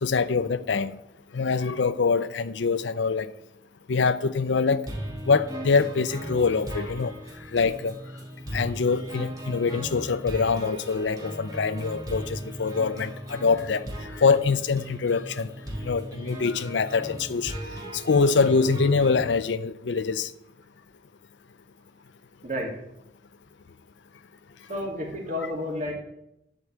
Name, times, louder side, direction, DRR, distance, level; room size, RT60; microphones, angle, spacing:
voice 1, 0.0-1.0 1.3-3.3 3.9-4.9 5.3-7.1 7.5-7.9 8.5-15.5 15.8-17.5 17.9-20.3, left 4 dB, 85° left, 0.5 m, -24 dB
sound 1, 4.9-19.3, right 1 dB, 20° right, 2.0 m, -37 dB
voice 2, 22.4-22.8 24.7-25.9, left 1 dB, 45° right, 2.6 m, -31 dB
12.0 x 4.5 x 8.0 m
head